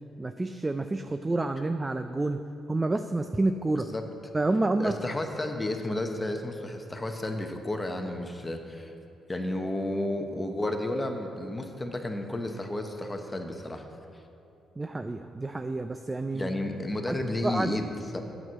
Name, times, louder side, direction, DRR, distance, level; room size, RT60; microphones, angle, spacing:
voice 1, 0.2-2.4 2.7-3.9 4.3-4.9 14.8-16.5 17.1-17.2 17.4-17.8, right 2 dB, 20° right, 8 dB, 0.4 m, -28 dB
voice 2, 3.7-4.0 4.8-8.9 9.3-13.9 16.3-18.2, left 1 dB, 15° left, 4 dB, 1.0 m, -32 dB
8.9 x 6.2 x 7.5 m, 2.8 s
cardioid pair, 90°, 0 cm